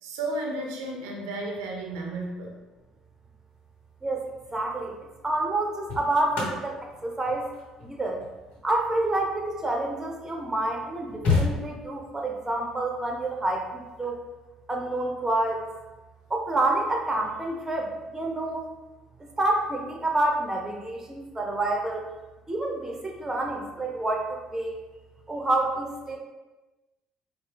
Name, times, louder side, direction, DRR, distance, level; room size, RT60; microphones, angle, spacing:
voice 1, 0.0-2.6, right 2 dB, 80° right, 1 dB, 0.5 m, -33 dB
sound 1, 4.2-4.5 5.4-10.0 10.6-10.7 10.9-12.1 13.8-14.0, left 4 dB, 65° left, 1.1 m, -31 dB
voice 2, 4.5-5.0 5.2-7.4 7.8-8.2 8.6-14.2 14.7-15.7 16.3-18.6 19.4-22.1 22.5-24.8 25.3-26.2, right 2 dB, 20° right, 1 dB, 0.8 m, -28 dB
4.2 x 2.1 x 3.4 m, 1.1 s
hypercardioid pair, 60°, 3 cm